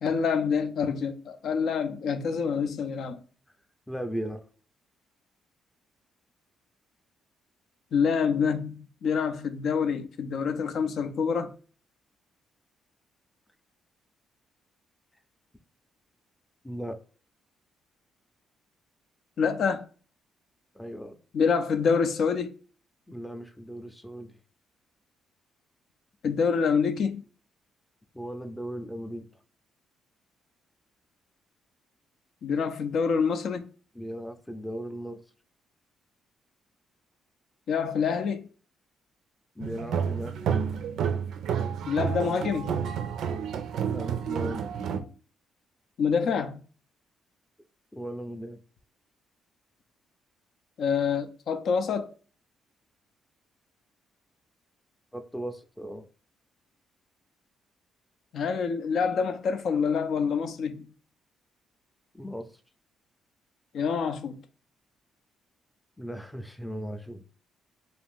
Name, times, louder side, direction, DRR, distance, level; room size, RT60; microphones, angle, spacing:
voice 1, 0.0-3.2 7.9-11.5 19.4-19.8 21.3-22.5 26.2-27.2 32.4-33.6 37.7-38.5 41.9-42.8 46.0-46.6 50.8-52.1 58.3-60.9 63.7-64.4, left 6 dB, 65° left, 0.4 m, -26 dB
voice 2, 3.9-4.4 16.6-17.0 20.7-21.2 23.1-24.3 28.1-29.3 33.9-35.2 39.6-40.4 43.9-44.6 47.9-48.6 55.1-56.0 62.1-62.5 66.0-67.5, equal, 5° left, 0.5 m, -37 dB
sound 1, 39.6-45.0, right 7 dB, 75° right, 0.4 m, -30 dB
2.5 x 2.4 x 3.5 m
cardioid pair, 90°, 0 cm